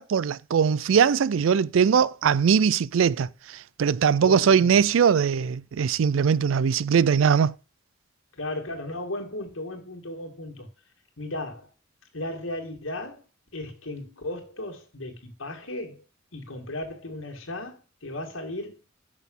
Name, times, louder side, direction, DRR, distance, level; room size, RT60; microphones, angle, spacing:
voice 1, 0.0-7.5, right 7 dB, 80° right, 0.4 m, -21 dB
voice 2, 4.1-4.7 8.4-10.7 11.2-11.7 12.1-13.2 13.5-16.0 16.3-18.8, left 1 dB, 80° left, 2.0 m, -35 dB
6.3 x 6.2 x 5.3 m
head